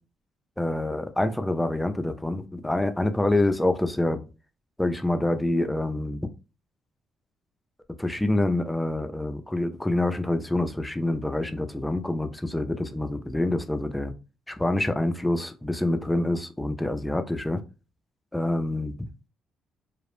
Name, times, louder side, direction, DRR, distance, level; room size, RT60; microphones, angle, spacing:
voice 1, 0.6-4.2 4.8-6.2 8.0-14.1 14.5-17.6 18.3-19.1, left 1 dB, 5° left, 8 dB, 0.3 m, -26 dB
2.4 x 2.0 x 3.0 m, 0.30 s
cardioid pair, 125°, 0 cm